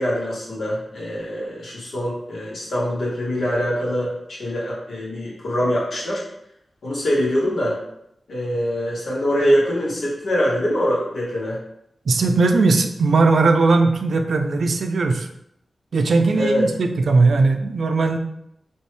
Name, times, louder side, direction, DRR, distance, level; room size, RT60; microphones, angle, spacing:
voice 1, 0.0-6.2 6.8-7.8 8.3-11.6 16.3-16.7, equal, 80° left, -5 dB, 1.6 m, -23 dB
voice 2, 12.1-15.3 15.9-18.2, right 3 dB, 75° right, 6 dB, 0.5 m, -18 dB
4.4 x 3.0 x 3.3 m, 0.77 s
wide cardioid pair, 135°, 0 cm